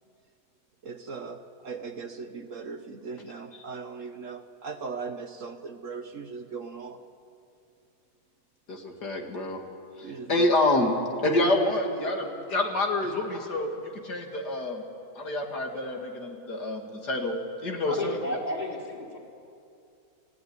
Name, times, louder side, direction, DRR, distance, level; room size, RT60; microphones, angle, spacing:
voice 1, 0.8-7.0 10.0-10.6, right 5 dB, 55° right, 8 dB, 1.3 m, -39 dB
voice 2, 8.7-9.6 10.0-10.9 11.2-13.7 14.0-14.8 15.2-17.4 17.6-18.1, left 2 dB, 80° left, 2 dB, 2.9 m, -27 dB
voice 3, 17.8-19.2, left 1 dB, 25° left, -1 dB, 3.9 m, -32 dB
29.5 x 15.5 x 9.7 m, 2.6 s
omnidirectional pair, 1.7 m